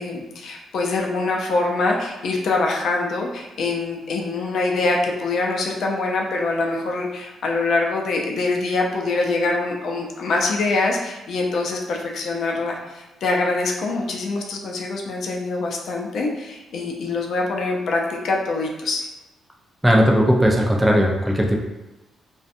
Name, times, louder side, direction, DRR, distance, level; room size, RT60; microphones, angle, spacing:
voice 1, 0.0-19.1, left 3 dB, 65° left, 0 dB, 0.4 m, -24 dB
voice 2, 19.8-21.6, equal, 5° right, -1 dB, 0.3 m, -17 dB
2.5 x 2.1 x 2.5 m, 1.0 s
cardioid pair, 115°, 0 cm